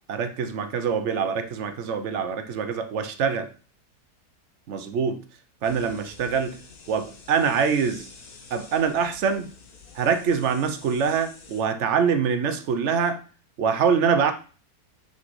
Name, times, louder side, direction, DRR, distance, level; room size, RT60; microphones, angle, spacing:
voice 1, 0.1-3.5 4.7-5.2 5.6-6.6 6.9-8.1 8.5-9.5 9.9-13.2 13.6-14.3, right 6 dB, 60° right, 0.9 m, -24 dB
sound 1, 5.6-11.6, left 4 dB, 75° left, 1.6 m, -48 dB
6.1 x 5.9 x 3.1 m
omnidirectional pair, 1.6 m